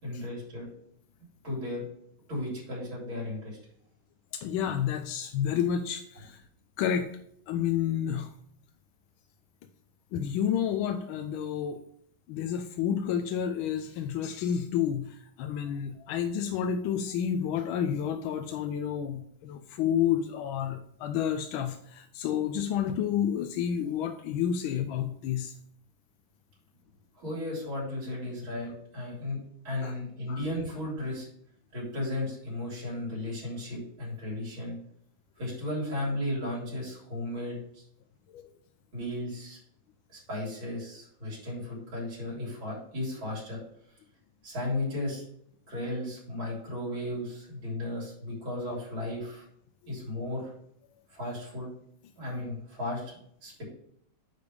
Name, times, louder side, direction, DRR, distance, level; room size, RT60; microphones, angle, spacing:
voice 1, 0.0-0.7 1.4-1.9 2.3-3.6 27.2-29.4 29.6-31.3 31.7-34.8 35.4-37.8 38.9-39.6 40.1-43.6 44.4-45.2 45.7-49.4 49.9-50.5 51.1-51.7 52.2-53.1 53.4-53.6, left 1 dB, 75° right, -5 dB, 4.4 m, -35 dB
voice 2, 4.3-6.4 6.8-7.1 7.5-8.3 10.1-11.8 12.3-25.6 29.8-29.9 30.3-30.4 38.3-38.5 49.8-50.1, left 9 dB, 85° left, 6 dB, 1.4 m, -30 dB
9.5 x 3.5 x 5.2 m, 0.69 s
omnidirectional pair, 2.2 m